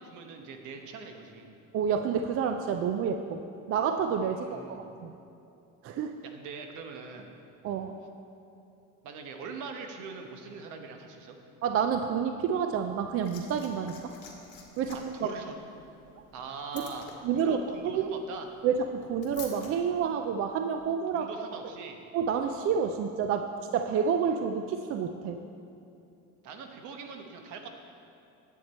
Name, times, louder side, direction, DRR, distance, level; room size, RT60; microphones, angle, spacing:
voice 1, 0.0-1.5 4.3-4.9 6.2-7.3 9.0-11.4 14.9-15.5 16.3-18.5 21.1-22.0 26.4-27.7, right 5 dB, 70° right, 4 dB, 1.1 m, -42 dB
voice 2, 1.7-3.4 3.7-5.1 5.8-6.2 7.6-7.9 11.6-14.1 14.8-15.3 17.2-17.6 17.9-18.0 18.6-21.3 22.1-25.4, right 7 dB, 45° right, 6 dB, 0.4 m, -29 dB
Liquid, 12.8-19.7 20.8-20.9, left 6 dB, 50° left, 1.6 m, -50 dB
9.6 x 8.3 x 4.3 m, 2.7 s
cardioid pair, 155°, 31 cm